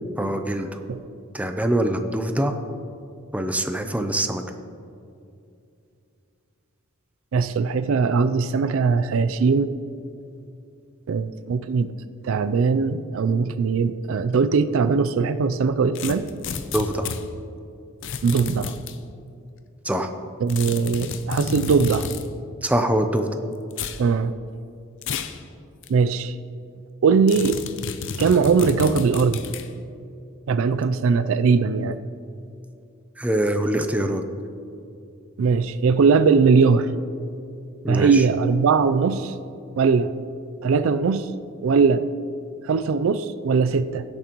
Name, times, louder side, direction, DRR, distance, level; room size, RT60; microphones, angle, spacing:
voice 1, 0.2-0.8 1.3-2.5 3.3-4.4 16.7-17.1 19.8-20.1 22.6-23.3 33.2-34.2 37.8-38.2, right 1 dB, 5° right, 6 dB, 0.5 m, -24 dB
voice 2, 7.3-9.7 11.1-11.9 12.2-16.3 18.2-18.7 20.4-22.1 24.0-24.3 25.9-26.3 27.0-27.6 28.2-29.4 30.5-32.0 35.4-36.9 37.9-39.3 39.8-40.1 40.6-41.3 41.6-42.0 42.7-44.0, right 5 dB, 65° right, 12 dB, 0.4 m, -20 dB
sound 1, 16.0-17.2 18.0-19.0 20.5-22.3 23.7-24.0 25.0-25.4 25.8-25.9 27.3-29.7, left 5 dB, 60° left, 0.6 m, -31 dB
16.0 x 8.7 x 3.0 m, 2.5 s
head